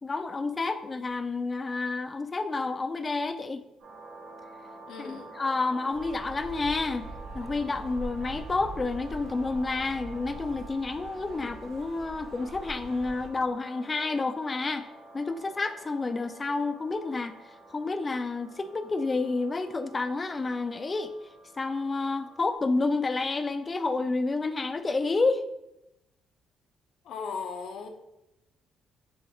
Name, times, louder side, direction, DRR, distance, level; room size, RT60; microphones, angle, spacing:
voice 1, 0.0-3.6 5.0-7.1 7.3-14.9 15.1-17.4 17.7-21.1 21.6-25.4, left 3 dB, 30° left, 9 dB, 0.4 m, -29 dB
sound 1, 3.8-22.6, right 3 dB, 75° right, 1.3 m, -49 dB
voice 2, 4.9-5.3 27.1-27.9, left 5 dB, 75° left, 4 dB, 0.6 m, -37 dB
sound 2, 5.9-13.3, right 2 dB, 60° right, 0.6 m, -43 dB
7.0 x 2.4 x 3.0 m, 0.90 s
cardioid pair, 90°, 0 cm